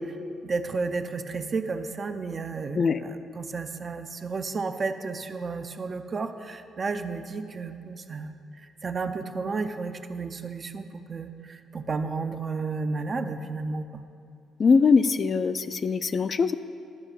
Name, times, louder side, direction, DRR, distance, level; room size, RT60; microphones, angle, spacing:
voice 1, 0.4-14.0, right 4 dB, 40° right, 8 dB, 0.6 m, -32 dB
voice 2, 14.6-16.5, left 5 dB, 45° left, 11 dB, 0.4 m, -22 dB
11.0 x 4.9 x 6.9 m, 2.4 s
cardioid pair, 75°, 0 cm